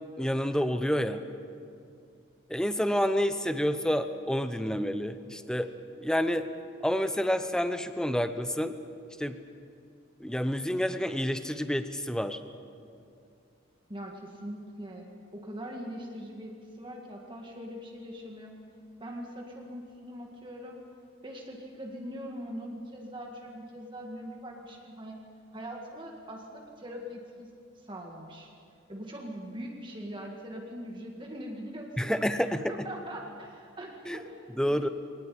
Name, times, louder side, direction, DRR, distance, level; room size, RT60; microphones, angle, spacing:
voice 1, 0.2-1.2 2.5-5.7 6.0-6.5 6.8-8.7 9.2-9.4 10.2-12.4 32.0-32.7 34.1-34.2 34.6-34.9, equal, 5° left, 9 dB, 0.8 m, -28 dB
voice 2, 13.9-18.5 19.0-20.8 21.2-25.2 25.5-28.5 28.9-32.4 32.7-34.9, equal, 25° right, 0 dB, 1.9 m, -42 dB
23.5 x 18.5 x 8.5 m, 2.5 s
head